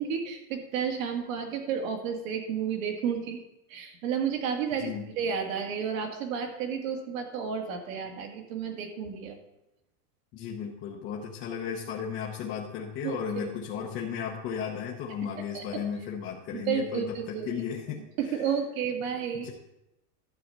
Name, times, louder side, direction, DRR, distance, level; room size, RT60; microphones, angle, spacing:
voice 1, 0.0-3.4 3.7-9.4 13.0-13.2 15.5-15.6 16.5-17.5 18.2-19.5, right 7 dB, 60° right, 3 dB, 2.0 m, -31 dB
voice 2, 10.3-18.0 19.3-19.5, left 7 dB, 25° left, -2 dB, 0.9 m, -35 dB
11.5 x 4.1 x 7.7 m, 0.91 s
supercardioid pair, 160°, 46 cm